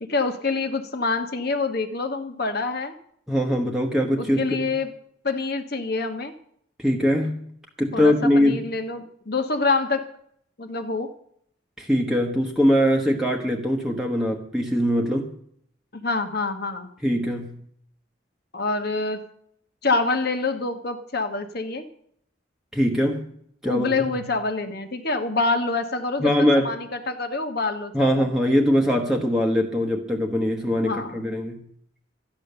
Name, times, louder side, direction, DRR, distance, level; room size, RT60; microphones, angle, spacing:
voice 1, 0.0-2.9 4.2-4.9 5.2-6.3 7.9-10.0 10.6-11.1 15.9-16.9 18.5-19.2 19.8-21.9 23.6-26.3 26.6-28.3 30.8-31.3, left 3 dB, 50° left, 6 dB, 1.2 m, -26 dB
voice 2, 3.3-4.7 6.8-7.4 7.8-8.7 11.8-15.3 17.0-17.6 22.7-23.3 23.6-23.9 26.2-26.8 27.9-31.6, equal, 5° right, 1 dB, 1.2 m, -22 dB
13.0 x 10.5 x 6.7 m, 0.68 s
head